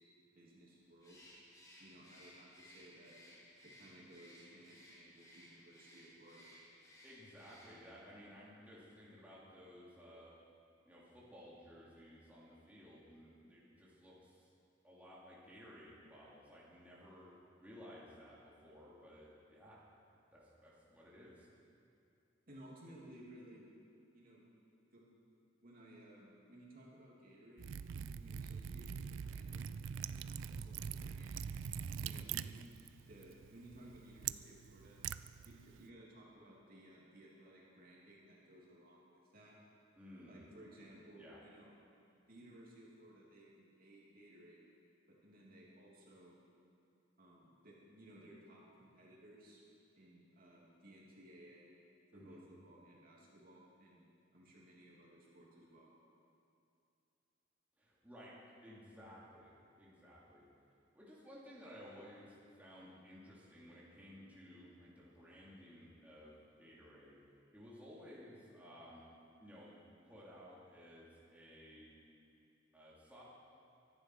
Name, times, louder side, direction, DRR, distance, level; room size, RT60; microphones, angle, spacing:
voice 1, 0.3-1.3 1.8-3.1 3.6-6.5 22.5-23.7 24.1-24.5 24.9-25.0 25.6-27.7 28.1-31.4 32.0-35.0 35.4-39.5 40.3-41.7 42.3-44.6 45.1-46.3 47.2-49.6 49.9-51.8 52.1-54.0 54.3-55.9, right 1 dB, 50° right, -5 dB, 3.1 m, -59 dB
Bird, 1.0-8.1, left 1 dB, 20° left, 2.3 m, -60 dB
voice 2, 7.0-10.3 10.8-14.5 14.8-17.3 17.6-19.8 20.3-21.5 40.0-40.5 41.1-41.4 52.1-52.4 57.8-58.3 58.6-59.5 59.8-60.5 60.9-67.2 67.5-69.1 69.4-69.8 70.0-71.9 72.7-73.2, equal, 10° right, -7 dB, 2.9 m, -56 dB
Liquid, 27.6-35.9, right 7 dB, 85° right, 0.4 m, -44 dB
24.0 x 11.0 x 4.8 m, 2.6 s
head